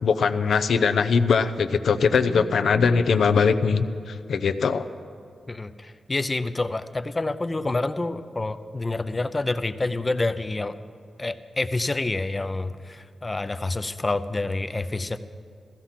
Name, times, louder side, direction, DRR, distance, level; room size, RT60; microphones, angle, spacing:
voice 1, 0.0-4.9, left 5 dB, 75° left, 11 dB, 0.6 m, -21 dB
voice 2, 5.5-10.8 11.2-15.2, left 2 dB, 25° left, 11 dB, 0.6 m, -28 dB
15.5 x 15.0 x 5.8 m, 2.3 s
wide cardioid pair, 95°, 0 cm